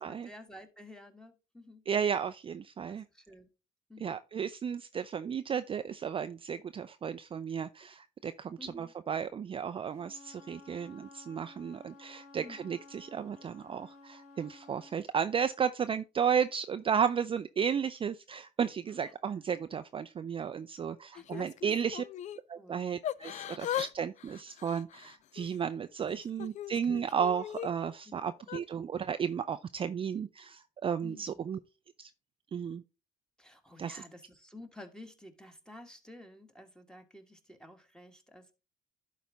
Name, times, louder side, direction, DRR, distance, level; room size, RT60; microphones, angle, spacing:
voice 1, 0.1-1.8 2.9-3.5 3.9-4.2 8.6-8.9 12.3-12.8 18.9-19.1 21.1-21.7 22.5-22.8 23.3-23.6 26.1-26.5 28.0-28.1 31.0-31.5 33.4-38.5, left 1 dB, 5° left, 1.6 m, -52 dB
voice 2, 1.9-3.0 4.0-22.0 22.5-31.6 32.0-32.1 32.5-32.8 33.8-34.0, right 7 dB, 30° right, 0.4 m, -33 dB
Wind instrument woodwind instrument, 9.9-15.0, left 3 dB, 70° left, 2.9 m, -54 dB
Yell / Crying sobbing, 21.2-22.4 23.0-23.9 24.2-25.6 26.1-27.7 28.4-28.6, left 11 dB, 45° left, 0.4 m, -39 dB
11.0 x 4.1 x 3.4 m
supercardioid pair, 65°, 17 cm